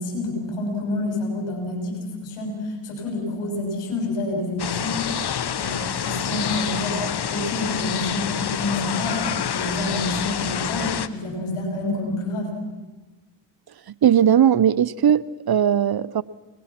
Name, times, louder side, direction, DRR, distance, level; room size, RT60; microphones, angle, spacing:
voice 1, 0.0-5.0 5.5-7.0 7.3-9.3 9.5-12.6, left 2 dB, 90° left, 6.6 m, -28 dB
sound 1, 4.6-11.1, left 8 dB, 50° left, 1.2 m, -27 dB
voice 2, 14.0-16.2, right 9 dB, 50° right, 0.8 m, -18 dB
29.0 x 21.0 x 6.1 m
supercardioid pair, 55°, 50 cm